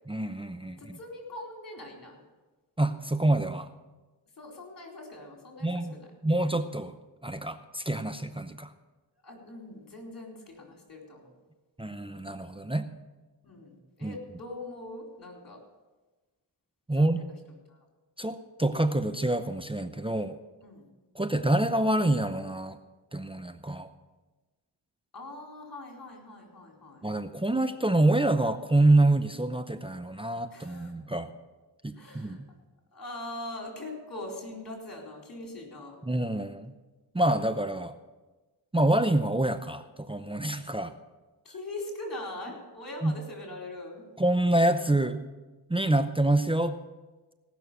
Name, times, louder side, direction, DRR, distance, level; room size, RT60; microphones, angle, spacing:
voice 1, 0.1-1.0 2.8-3.7 5.6-5.9 6.2-6.9 7.2-8.7 11.8-12.9 14.0-14.2 16.9-17.2 18.2-20.4 21.1-22.8 23.1-23.9 27.0-31.3 31.8-32.5 36.0-36.7 37.1-37.9 38.7-40.9 43.0-43.1 44.2-45.2 45.7-46.8, right 1 dB, 10° right, 9 dB, 0.7 m, -26 dB
voice 2, 0.8-2.2 4.4-6.1 9.2-11.3 13.4-15.6 16.9-17.3 17.7-17.8 20.6-20.9 25.1-27.1 30.5-30.9 31.9-32.4 32.9-36.0 41.4-44.0, left 2 dB, 45° left, 1 dB, 4.1 m, -42 dB
17.5 x 6.2 x 6.9 m, 1.2 s
cardioid pair, 60°, 45 cm